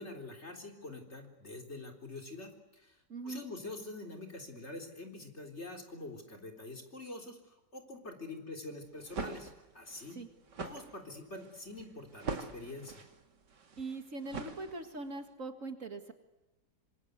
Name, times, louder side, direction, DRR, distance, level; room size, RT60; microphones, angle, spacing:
voice 1, 0.0-3.0 3.2-7.4 7.7-10.2 10.6-13.0, left 2 dB, 40° left, 3 dB, 4.0 m, -45 dB
voice 2, 3.1-3.4 10.1-10.3 13.8-16.1, right 3 dB, 45° right, 7 dB, 2.2 m, -41 dB
sound 1, 8.9-15.1, right 4 dB, 75° right, 2.8 m, -43 dB
26.0 x 26.0 x 8.1 m, 1.0 s
omnidirectional pair, 1.9 m